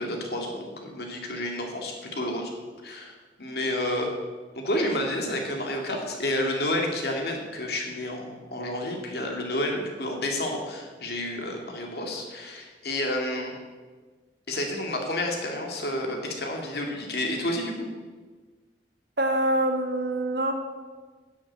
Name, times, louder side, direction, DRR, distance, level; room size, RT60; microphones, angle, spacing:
voice 1, 0.0-2.5 2.8-4.1 4.6-13.5 14.5-17.7, left 1 dB, 60° left, 2 dB, 2.2 m, -30 dB
voice 2, 19.2-20.5, right 1 dB, 65° right, 4 dB, 1.6 m, -25 dB
11.0 x 6.5 x 7.9 m, 1.4 s
head